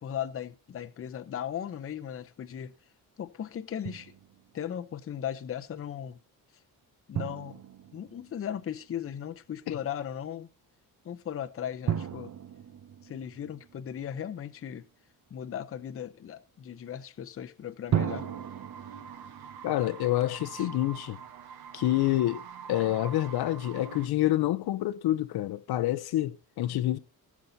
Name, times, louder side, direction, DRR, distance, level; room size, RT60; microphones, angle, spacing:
voice 1, 0.0-2.7 3.2-4.1 4.5-6.2 7.1-7.6 7.9-10.5 11.0-12.3 13.0-14.9 15.3-18.3 20.6-20.7, left 9 dB, 35° left, 0.7 m, -37 dB
Drum, 3.8-4.6 7.2-8.9 11.9-14.4 17.9-21.1, right 9 dB, 50° right, 0.9 m, -36 dB
sound 1, 18.1-24.1, right 7 dB, 80° right, 1.4 m, -45 dB
voice 2, 19.6-21.2 21.7-27.0, left 14 dB, 80° left, 0.7 m, -27 dB
17.5 x 7.2 x 4.0 m
cardioid pair, 160°, 37 cm